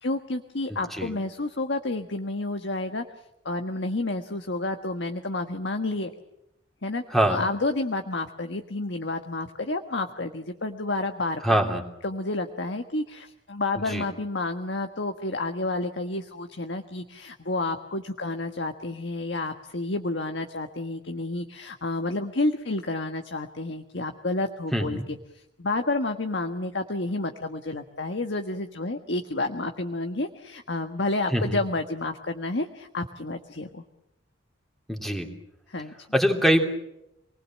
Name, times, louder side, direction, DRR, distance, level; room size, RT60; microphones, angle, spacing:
voice 1, 0.0-3.0 3.4-6.1 6.8-7.0 7.3-11.4 12.0-33.8 35.7-35.9, left 2 dB, 60° left, 6 dB, 1.4 m, -30 dB
voice 2, 0.7-1.1 7.1-7.4 11.4-11.8 13.9-14.0 24.7-25.0 31.3-31.6 34.9-35.3 36.1-36.6, right 1 dB, ahead, 3 dB, 3.1 m, -23 dB
28.0 x 20.0 x 7.4 m, 0.85 s
head